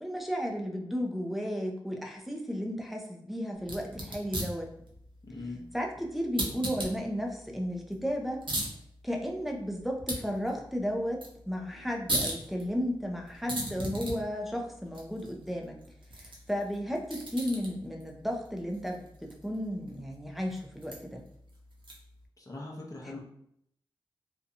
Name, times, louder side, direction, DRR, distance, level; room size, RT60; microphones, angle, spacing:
voice 1, 0.0-4.7 5.7-8.4 9.0-15.8 16.2-21.2 23.0-23.1, equal, ahead, 1 dB, 0.6 m, -34 dB
sound 1, 3.6-22.2, right 1 dB, 60° right, 0.7 m, -40 dB
voice 2, 5.2-5.6 22.4-23.2, left 2 dB, 35° left, -2 dB, 0.8 m, -41 dB
2.7 x 2.3 x 2.6 m, 0.72 s
cardioid pair, 50°, 9 cm